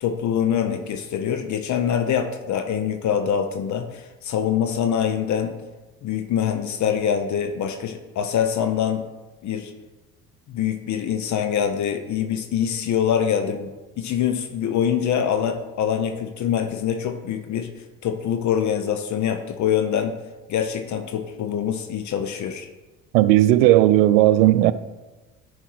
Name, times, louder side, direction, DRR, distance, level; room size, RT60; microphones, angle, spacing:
voice 1, 0.0-5.6 6.0-9.0 9.4-9.7 10.5-17.7 18.0-20.1 20.5-22.7, left 8 dB, 45° left, 0.8 m, -24 dB
voice 2, 23.1-24.7, right 14 dB, 70° right, 0.6 m, -15 dB
11.0 x 4.5 x 4.7 m
hypercardioid pair, 65°, 40 cm